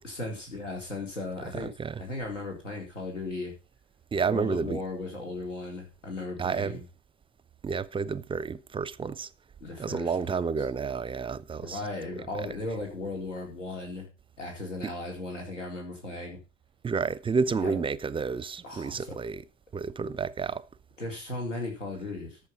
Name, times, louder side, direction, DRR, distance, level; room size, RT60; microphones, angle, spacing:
voice 1, 0.0-1.7 2.0-3.5 4.2-6.8 9.6-10.6 11.6-14.1 14.4-16.4 17.6-17.8 18.6-19.2 21.0-22.4, left 2 dB, 90° left, 4.2 m, -36 dB
voice 2, 1.5-2.0 4.1-4.8 6.4-6.8 7.6-9.3 9.8-11.8 14.8-14.9 16.8-19.4 19.7-20.7, right 5 dB, 15° right, 0.5 m, -30 dB
13.5 x 6.8 x 5.6 m
hypercardioid pair, 80°, 36 cm